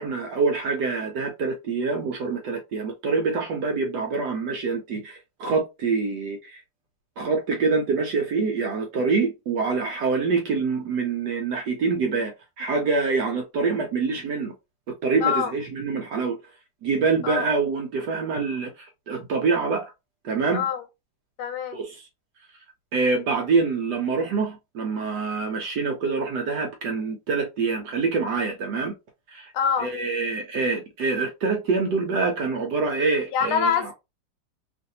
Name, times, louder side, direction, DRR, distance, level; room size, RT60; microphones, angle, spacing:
voice 1, 0.0-6.6 7.2-12.3 12.6-14.5 14.9-16.4 16.8-19.9 20.2-20.7 21.7-22.0 22.9-28.9 29.3-29.5 29.8-33.9, right 4 dB, 70° right, 1.0 m, -25 dB
voice 2, 15.2-15.5 17.2-17.5 20.5-20.8 21.4-21.8 29.5-29.9 33.3-33.9, left 7 dB, 80° left, 1.6 m, -24 dB
3.1 x 2.5 x 2.7 m
omnidirectional pair, 2.3 m